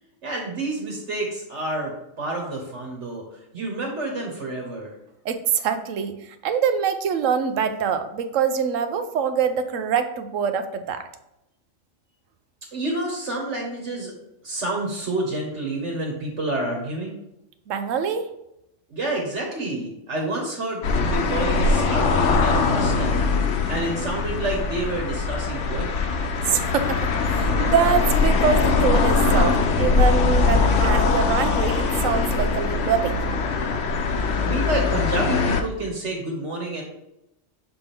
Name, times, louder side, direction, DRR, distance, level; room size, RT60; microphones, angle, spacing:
voice 1, 0.2-1.9 2.2-3.2 3.5-4.9 12.7-14.2 14.4-17.1 18.9-23.3 23.7-26.2 34.4-36.8, right 2 dB, 60° right, 0 dB, 1.6 m, -29 dB
voice 2, 5.2-11.0 17.7-18.3 26.5-33.2, right 7 dB, 80° right, 9 dB, 1.0 m, -24 dB
sound 1, 20.8-35.6, left 4 dB, 70° left, 1.0 m, -21 dB
6.8 x 4.3 x 3.5 m, 0.84 s
omnidirectional pair, 1.3 m